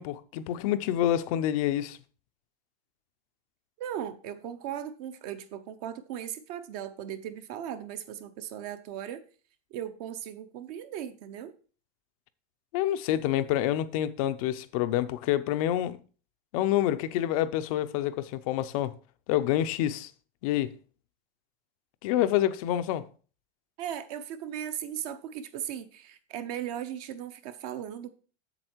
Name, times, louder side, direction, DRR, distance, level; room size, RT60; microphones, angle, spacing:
voice 1, 0.0-2.0 12.7-16.0 16.5-18.9 19.3-20.1 20.4-20.7 22.0-23.1, left 12 dB, 35° left, 0.5 m, -27 dB
voice 2, 3.8-9.2 9.7-11.5 23.8-28.1, right 10 dB, 40° right, 0.8 m, -37 dB
7.9 x 7.3 x 4.4 m
supercardioid pair, 170°, 32 cm